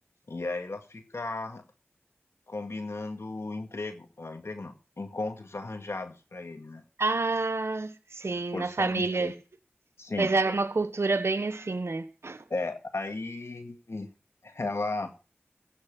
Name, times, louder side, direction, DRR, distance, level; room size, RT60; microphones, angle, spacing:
voice 1, 0.3-1.6 2.5-6.8 8.5-9.3 10.0-10.3 12.5-14.1 14.4-15.1, left 3 dB, 75° left, 1.9 m, -35 dB
voice 2, 7.0-9.3 10.2-12.4, right 3 dB, 70° right, 1.1 m, -28 dB
16.0 x 7.8 x 6.1 m
wide cardioid pair, 40°, 5 cm